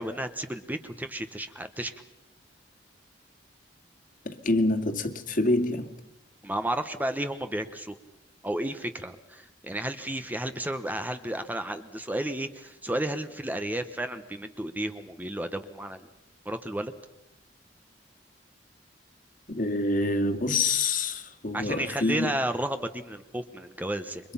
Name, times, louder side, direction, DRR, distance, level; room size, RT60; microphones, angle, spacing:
voice 1, 0.0-1.9 6.4-7.9 8.4-16.1 16.4-16.9 21.5-24.2, right 1 dB, 10° right, 1.1 m, -32 dB
voice 2, 4.2-5.9 19.5-22.3, left 2 dB, 50° left, 2.2 m, -26 dB
29.0 x 24.5 x 5.7 m
head